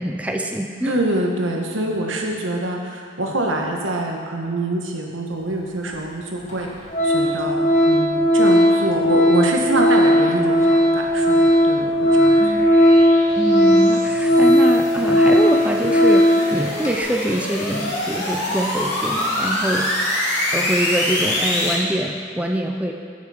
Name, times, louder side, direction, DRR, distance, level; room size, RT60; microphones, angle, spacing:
voice 1, 0.0-1.0 12.4-12.7 13.4-19.9 20.5-22.9, right 1 dB, 5° right, 2 dB, 0.4 m, -24 dB
voice 2, 0.8-6.7 7.0-12.4, right 1 dB, 85° right, 1 dB, 1.3 m, -25 dB
Organ, 5.9-6.0 6.5-6.7 6.9-16.5 16.8-17.0, equal, 35° left, 1.4 m, -16 dB
sound 1, 10.5-21.7, left 1 dB, 65° left, 2.6 m, -26 dB
10.5 x 6.5 x 5.0 m, 2.3 s
head